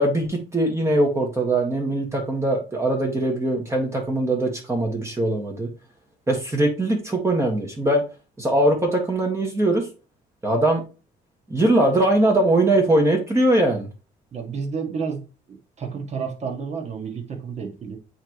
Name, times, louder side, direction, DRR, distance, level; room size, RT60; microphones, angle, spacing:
voice 1, 0.0-5.7 6.3-8.0 8.4-9.8 10.4-10.8 11.5-13.9, right 1 dB, 15° right, 2 dB, 1.6 m, -21 dB
voice 2, 14.3-15.2 15.5-18.0, right 5 dB, 40° right, 2 dB, 1.8 m, -31 dB
8.8 x 3.5 x 3.1 m, 0.32 s
cardioid pair, 110°, 17 cm